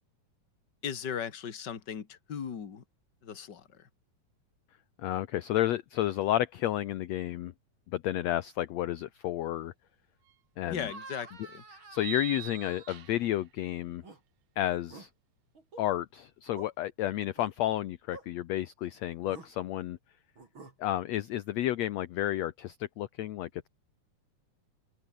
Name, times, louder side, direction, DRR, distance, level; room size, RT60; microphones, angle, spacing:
voice 1, 0.8-2.8 3.2-3.9 10.7-11.6, left 8 dB, 40° left, 2.3 m, -38 dB
voice 2, 5.0-7.5 7.9-9.7 10.6-10.9 11.9-14.0 14.6-15.1 15.8-20.0 20.8-23.5, left 13 dB, 65° left, 1.9 m, -31 dB
sound 1, 10.3-10.4 11.9-13.4, right 13 dB, 80° right, 2.7 m, -42 dB
sound 2, 10.8-13.5 13.9-14.2 14.7-15.1 15.5-15.8 16.5-16.7 17.4-17.5 18.1-18.3 19.2-19.5 20.4-20.7, right 3 dB, 35° right, 5.5 m, -49 dB
omnidirectional pair, 3.7 m